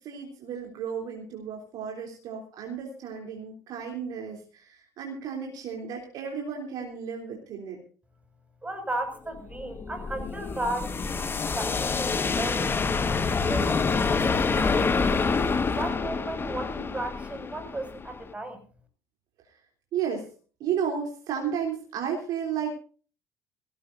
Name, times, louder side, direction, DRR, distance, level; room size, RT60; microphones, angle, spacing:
voice 1, 0.0-7.8 19.9-20.3 20.6-22.7, right 7 dB, 55° right, 0 dB, 3.4 m, -33 dB
voice 2, 8.6-12.8 13.5-15.3 15.7-18.6, right 1 dB, 15° right, 7 dB, 6.5 m, -35 dB
sound 1, 9.4-18.3, left 4 dB, 30° left, 1.5 m, -27 dB
19.5 x 17.5 x 2.7 m, 0.40 s
figure-of-eight pair, 55°, 8 cm